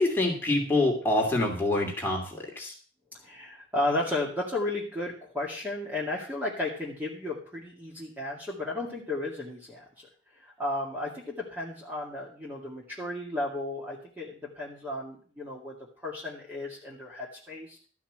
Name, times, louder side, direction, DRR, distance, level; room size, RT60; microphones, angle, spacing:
voice 1, 0.0-2.7, left 2 dB, 10° left, -2 dB, 2.6 m, -26 dB
voice 2, 3.2-10.1 10.4-15.8 16.0-17.8, left 2 dB, 10° right, -4 dB, 2.1 m, -34 dB
13.0 x 5.9 x 7.4 m, 0.43 s
head